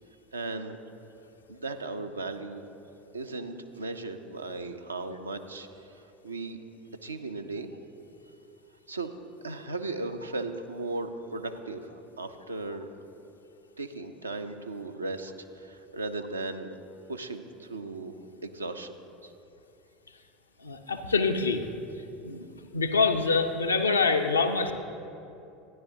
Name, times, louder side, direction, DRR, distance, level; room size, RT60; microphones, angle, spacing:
voice 1, 0.3-0.8 1.5-2.6 3.1-5.7 6.2-6.6 7.0-7.7 8.9-9.1 9.4-11.9 12.2-12.9 13.8-16.7 17.1-18.1 18.4-19.0 19.2-19.3, right 3 dB, 80° right, 7 dB, 0.5 m, -36 dB
voice 2, 20.6-21.7 22.2-22.5 22.7-24.7, left 4 dB, 80° left, 5 dB, 0.5 m, -25 dB
12.5 x 10.5 x 2.7 m, 2.8 s
figure-of-eight pair, 75°, 0 cm